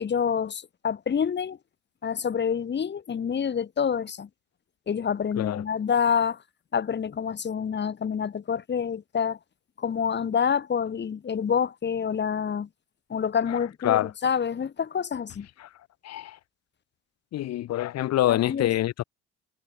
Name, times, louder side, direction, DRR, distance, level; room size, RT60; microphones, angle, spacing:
voice 1, 0.0-1.6 2.0-4.3 4.9-6.4 6.7-9.4 9.8-12.7 13.1-15.5 18.3-18.7, left 7 dB, 35° left, 2.0 m, -27 dB
voice 2, 16.0-16.4 17.3-19.0, left 14 dB, 50° left, 1.7 m, -26 dB
figure-of-eight pair, 55°, 33 cm